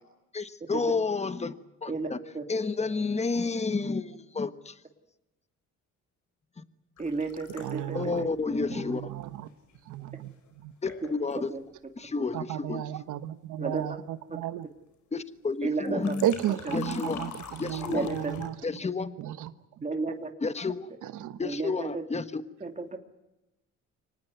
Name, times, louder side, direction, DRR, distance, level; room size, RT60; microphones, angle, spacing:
voice 1, 0.3-1.5 1.8-2.2 2.5-4.8 6.6-6.7 7.9-9.1 10.8-11.5 12.0-12.8 15.1-16.2 16.7-18.1 18.6-19.1 20.4-20.9 21.4-22.4, left 4 dB, 20° left, 12 dB, 1.4 m, -30 dB
sound 1, 7.0-9.8 10.5-10.6 10.9-11.4 15.8-18.5, left 6 dB, 75° left, 4.7 m, -45 dB
voice 2, 7.0-8.3 8.7-8.8 11.4-11.6 13.6-13.9 15.6-16.2 16.6-16.7 17.8-18.3 19.8-20.3 21.4-22.0 22.6-23.0, right 3 dB, 25° right, 5 dB, 2.6 m, -32 dB
voice 3, 7.6-8.3 8.7-9.5 9.8-10.7 12.3-14.7 16.2-18.5 19.2-19.5 19.8-19.9 21.0-21.4, right 12 dB, 85° right, 12 dB, 1.3 m, -34 dB
24.5 x 19.5 x 9.4 m, 0.94 s
cardioid pair, 90°, 30 cm